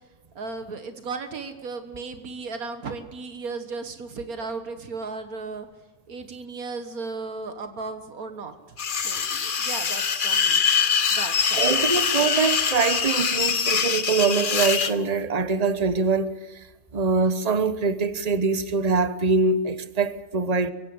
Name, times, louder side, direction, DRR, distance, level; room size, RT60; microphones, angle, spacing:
voice 1, 0.4-5.7 6.1-10.6 11.1-11.7, right 4 dB, 75° right, 1.9 m, -35 dB
sound 1, 8.8-14.9, left 6 dB, 40° left, 0.9 m, -23 dB
voice 2, 11.6-16.7 16.9-20.7, right 4 dB, 30° right, 1.1 m, -23 dB
23.5 x 16.0 x 7.8 m
omnidirectional pair, 1.5 m